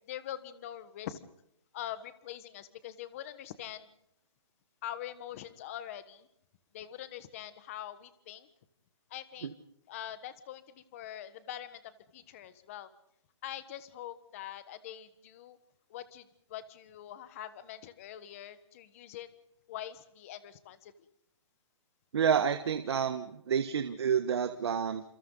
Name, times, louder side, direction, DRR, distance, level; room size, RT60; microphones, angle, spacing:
voice 1, 0.1-1.2 1.7-3.9 4.8-6.3 6.7-8.5 9.1-9.5 9.9-12.9 13.4-15.6 15.9-16.2 16.5-19.3 19.7-20.9, left 11 dB, 25° left, 12 dB, 1.3 m, -43 dB
voice 2, 22.1-25.0, right 7 dB, 55° right, 7 dB, 1.6 m, -29 dB
30.0 x 28.0 x 4.0 m, 0.77 s
hypercardioid pair, 170°, 16 cm